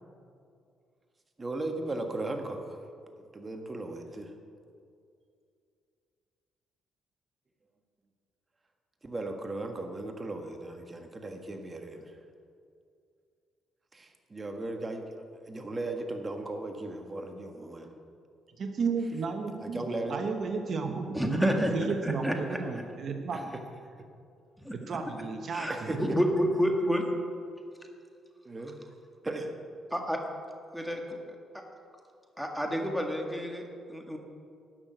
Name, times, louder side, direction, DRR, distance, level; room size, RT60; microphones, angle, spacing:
voice 1, 1.4-2.8 3.2-4.3 9.0-12.1 13.9-15.0 15.3-17.9 19.6-20.1 23.3-23.4 25.7-26.2 28.4-28.8 29.2-29.5, right 2 dB, 25° right, 4 dB, 1.6 m, -37 dB
voice 2, 18.6-23.5 24.7-26.0, right 4 dB, 55° right, 5 dB, 1.0 m, -33 dB
voice 3, 21.1-21.8 22.0-22.6 24.6-24.7 25.5-27.1 29.9-30.2 30.7-31.4 32.4-34.2, equal, ahead, 2 dB, 1.8 m, -29 dB
12.5 x 6.4 x 9.1 m, 2.4 s
cardioid pair, 90°, 0 cm